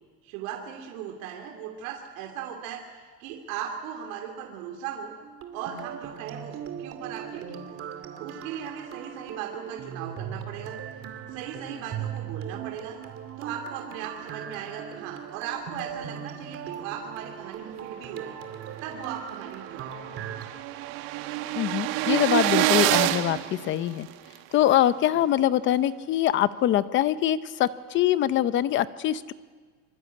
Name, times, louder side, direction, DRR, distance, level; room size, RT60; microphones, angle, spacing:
voice 1, 0.2-5.1 5.5-7.9 8.2-10.8 11.3-13.0 13.4-18.4 18.8-20.2, right 8 dB, 75° right, 1 dB, 3.2 m, -38 dB
sound 1, 5.2-20.5, right 8 dB, 35° right, 2.5 m, -39 dB
sound 2, 18.8-18.9 19.2-19.3 19.5-24.4, right 15 dB, 60° right, 1.5 m, -27 dB
voice 2, 21.6-24.1 24.5-29.3, left 12 dB, 30° left, 14 dB, 0.7 m, -24 dB
25.5 x 24.0 x 8.6 m, 1.5 s
cardioid pair, 175°, 41 cm